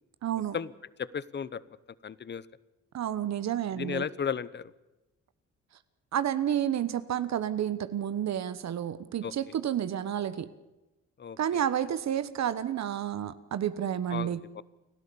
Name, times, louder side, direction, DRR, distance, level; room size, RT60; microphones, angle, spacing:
voice 1, 0.2-0.5 2.9-4.0 6.1-10.5 11.4-14.4, right 10 dB, 65° right, 13 dB, 1.2 m, -30 dB
voice 2, 1.0-1.6 2.0-2.5 3.8-4.7 9.2-9.3 11.2-11.6 14.1-14.6, left 7 dB, 35° left, 19 dB, 0.9 m, -34 dB
30.0 x 13.0 x 7.1 m, 1.0 s
cardioid pair, 105°, 29 cm